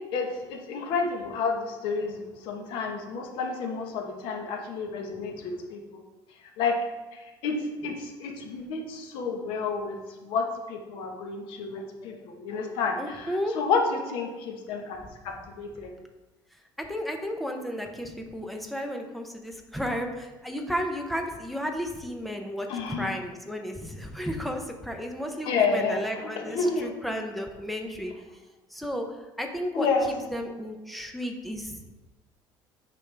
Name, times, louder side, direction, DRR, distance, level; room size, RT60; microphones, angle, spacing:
voice 1, 0.1-6.0 6.6-6.7 7.1-7.6 7.8-10.0 10.2-15.0 15.2-15.9 22.7-23.1 25.4-26.9 29.7-30.1, left 4 dB, 70° left, 3 dB, 1.1 m, -30 dB
voice 2, 13.0-13.6 16.8-28.1 28.7-31.8, equal, ahead, 3 dB, 0.6 m, -33 dB
8.7 x 5.3 x 3.3 m, 1.1 s
cardioid pair, 165°, 9 cm